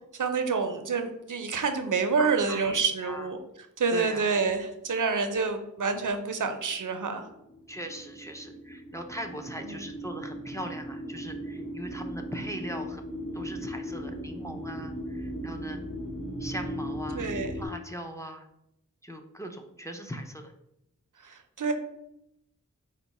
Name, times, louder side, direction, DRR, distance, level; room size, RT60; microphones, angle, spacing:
voice 1, 0.1-3.4 3.8-7.3 9.7-9.8 17.1-17.5 21.2-21.7, right 4 dB, 75° right, 7 dB, 0.5 m, -28 dB
voice 2, 2.2-3.3 3.9-4.3 7.7-15.8 16.4-17.3 17.6-18.5 19.0-20.5, equal, 10° left, 5 dB, 0.4 m, -40 dB
sound 1, 6.7-17.7, equal, 80° left, 0.8 m, -37 dB
4.4 x 2.0 x 4.0 m, 0.82 s
wide cardioid pair, 50°, 32 cm